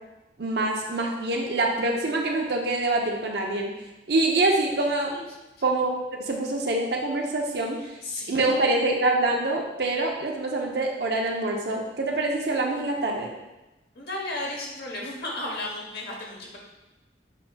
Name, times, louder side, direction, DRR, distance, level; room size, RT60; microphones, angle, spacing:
voice 1, 0.4-3.7 4.1-5.1 5.6-5.9 6.2-7.8 8.3-13.3, right 2 dB, 65° right, 1 dB, 0.7 m, -25 dB
voice 2, 7.8-8.7 13.9-16.6, left 2 dB, 55° left, -2 dB, 1.0 m, -34 dB
7.5 x 2.9 x 2.3 m, 1.0 s
head